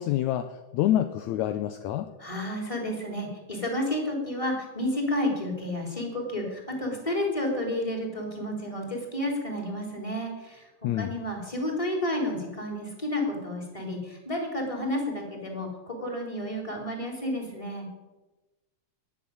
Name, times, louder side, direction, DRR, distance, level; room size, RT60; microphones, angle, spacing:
voice 1, 0.0-2.1 10.8-11.1, left 12 dB, 75° left, 9 dB, 1.8 m, -27 dB
voice 2, 2.2-10.7 10.9-17.9, left 1 dB, 10° left, 2 dB, 3.2 m, -31 dB
20.0 x 7.5 x 8.7 m, 1.1 s
omnidirectional pair, 3.9 m